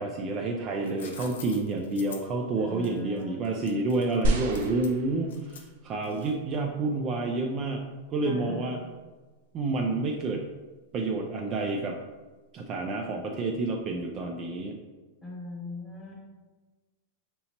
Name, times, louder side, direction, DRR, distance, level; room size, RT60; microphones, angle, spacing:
voice 1, 0.0-7.8 8.1-8.8 9.5-10.4 10.9-12.0 12.5-14.8, right 3 dB, 25° right, 1 dB, 0.3 m, -29 dB
sound 1, 0.6-6.6, left 6 dB, 90° left, 0.6 m, -48 dB
voice 2, 2.6-3.3 8.2-8.8 15.2-16.1, left 3 dB, 10° left, -4 dB, 1.1 m, -40 dB
sound 2, 4.2-5.7 6.5-6.6, right 1 dB, 70° right, 0.6 m, -29 dB
5.3 x 2.8 x 2.8 m, 1.2 s
supercardioid pair, 160°, 0 cm